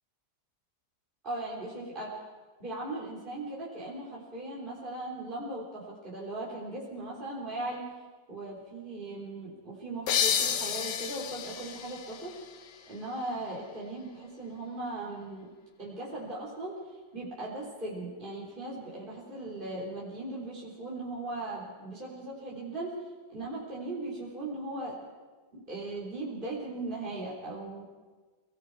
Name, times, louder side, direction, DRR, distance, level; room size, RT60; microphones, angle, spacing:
voice 1, 1.2-2.2 2.6-7.9 8.3-12.3 12.9-15.5 15.8-16.8 17.1-22.9 23.3-25.0 25.5-27.8, right 2 dB, 30° right, -6 dB, 4.0 m, -38 dB
sound 1, 10.1-13.5, left 8 dB, 80° left, 1.7 m, -32 dB
30.0 x 19.5 x 4.8 m, 1.4 s
omnidirectional pair, 1.9 m